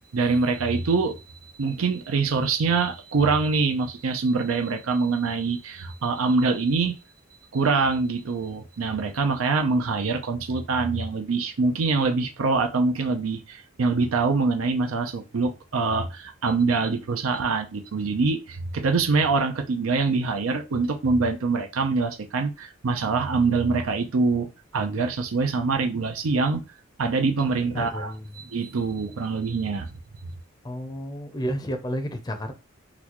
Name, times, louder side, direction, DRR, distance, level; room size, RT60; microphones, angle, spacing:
voice 1, 0.1-7.0 7.5-24.5 24.7-26.6 27.0-29.9, right 4 dB, 90° right, 0.5 m, -24 dB
voice 2, 27.7-28.4 30.6-32.5, equal, 20° left, 0.5 m, -31 dB
3.9 x 2.3 x 2.9 m
head